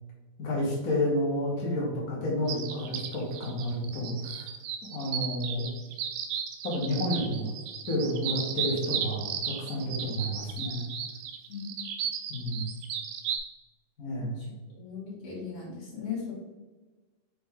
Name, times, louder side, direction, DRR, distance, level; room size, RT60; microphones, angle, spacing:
voice 1, 0.4-4.5 4.9-5.6 6.6-7.5 7.9-10.8 12.3-12.7 14.0-14.4, left 1 dB, 80° left, -5 dB, 0.8 m, -30 dB
sound 1, 2.5-13.4, right 8 dB, 90° right, 2.7 m, -34 dB
voice 2, 14.8-16.3, left 6 dB, 40° left, -6 dB, 2.4 m, -38 dB
6.6 x 4.7 x 3.8 m, 1.2 s
omnidirectional pair, 4.6 m